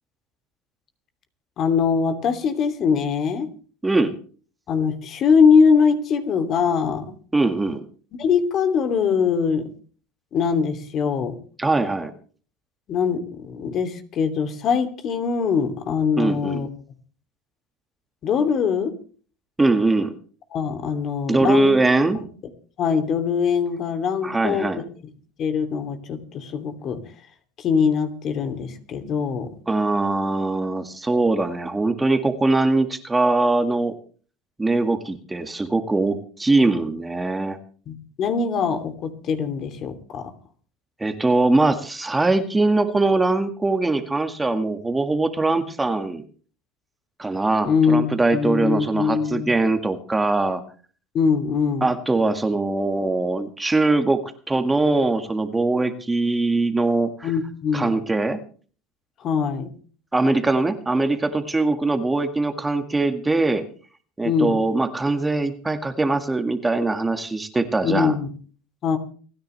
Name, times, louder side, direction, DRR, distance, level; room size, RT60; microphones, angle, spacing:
voice 1, 1.6-3.5 4.7-7.1 8.2-9.7 10.3-11.4 12.9-16.7 18.2-19.0 20.5-21.7 22.1-22.3 22.8-24.8 25.4-27.0 27.6-29.5 37.9-40.3 47.6-49.5 51.1-51.9 57.2-57.9 59.2-59.7 64.2-64.6 67.8-68.3 68.8-69.0, left 6 dB, 45° left, 7 dB, 2.9 m, -22 dB
voice 2, 3.8-4.1 7.3-7.8 11.6-12.1 16.2-16.7 19.6-20.1 21.3-22.2 24.2-24.8 29.7-33.9 34.6-37.6 41.0-46.2 47.2-50.6 51.8-57.1 57.7-58.4 60.1-63.6 64.2-68.1, right 2 dB, 15° right, 7 dB, 1.9 m, -21 dB
29.0 x 10.5 x 3.4 m, 0.41 s
supercardioid pair, 95°, 0 cm